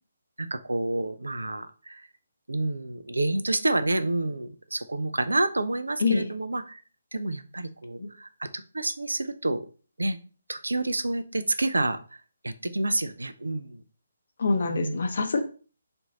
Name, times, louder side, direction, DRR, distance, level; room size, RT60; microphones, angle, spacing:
voice 1, 0.4-2.1 2.5-6.8 7.1-9.6 10.0-10.2 10.5-12.0 12.4-13.8 14.6-15.0, right 2 dB, 75° right, 11 dB, 0.4 m, -29 dB
voice 2, 14.4-15.4, left 4 dB, 55° left, 6 dB, 0.6 m, -25 dB
3.1 x 2.6 x 3.6 m, 0.38 s
figure-of-eight pair, 140°, 0 cm